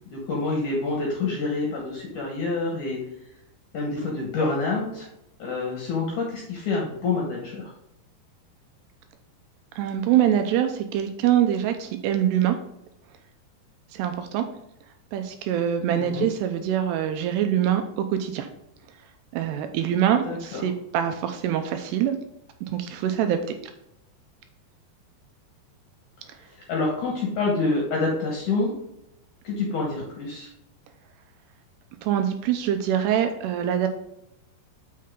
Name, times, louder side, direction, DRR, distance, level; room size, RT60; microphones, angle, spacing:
voice 1, 0.1-3.0 3.7-5.1 5.4-7.7 15.9-16.3 20.3-20.6 26.7-28.7 29.4-30.5, left 3 dB, 70° left, -1 dB, 2.0 m, -27 dB
voice 2, 9.8-12.6 13.9-14.5 15.1-18.5 19.3-22.2 22.6-23.4 32.0-33.9, right 10 dB, 80° right, 6 dB, 2.5 m, -24 dB
7.5 x 5.7 x 3.6 m, 0.81 s
omnidirectional pair, 5.1 m